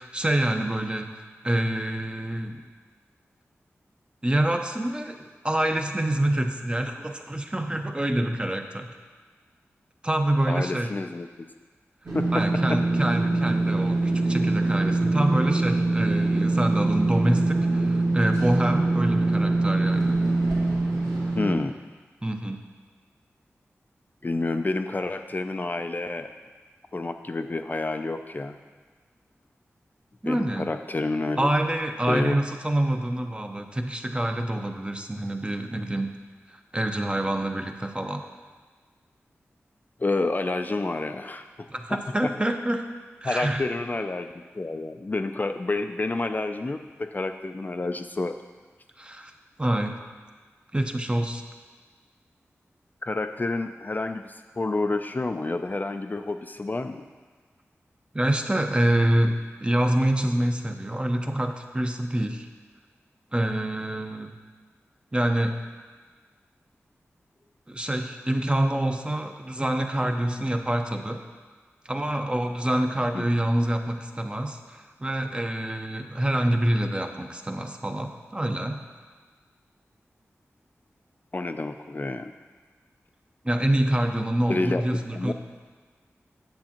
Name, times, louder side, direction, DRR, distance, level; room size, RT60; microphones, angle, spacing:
voice 1, 0.0-2.6 4.2-8.9 10.0-10.9 12.3-20.2 22.2-22.6 30.2-30.7 31.4-36.1 36.5-38.2 41.7-42.8 43.2-43.7 49.0-49.3 49.6-49.9 50.7-51.4 58.1-62.5 63.3-64.3 65.1-65.6 67.7-71.2 71.8-78.8 83.4-85.3, right 1 dB, 20° right, 5 dB, 0.6 m, -26 dB
voice 2, 10.5-11.5 12.1-12.8 13.3-13.4 21.4-21.7 24.2-26.3 26.9-28.6 30.2-31.5 32.0-32.4 40.0-41.7 43.2-48.3 53.0-57.0 73.1-73.2 81.3-82.3 84.5-84.8 85.1-85.3, left 2 dB, 35° left, 7 dB, 0.3 m, -29 dB
sound 1, 12.1-21.5, right 2 dB, 75° right, 2.0 m, -23 dB
8.8 x 7.0 x 2.9 m, 1.4 s
cardioid pair, 50°, 5 cm